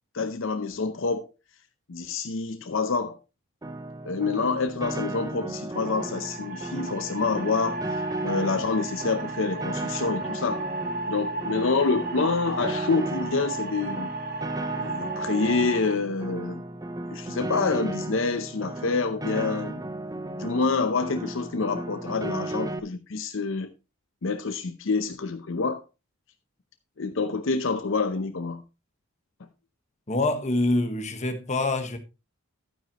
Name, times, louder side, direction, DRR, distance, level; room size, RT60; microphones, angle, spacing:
voice 1, 0.1-1.3 1.9-3.2 4.0-10.6 11.1-14.1 14.7-16.6 17.1-19.8 20.4-23.7 24.2-25.8 27.0-28.6, left 4 dB, 65° left, 0.7 m, -27 dB
Piano, 3.6-22.8, right 2 dB, 15° right, 0.8 m, -35 dB
sound 1, 5.7-15.9, right 3 dB, 50° right, 1.1 m, -34 dB
voice 2, 30.1-32.0, left 2 dB, 35° left, 1.3 m, -25 dB
12.0 x 9.2 x 3.0 m
head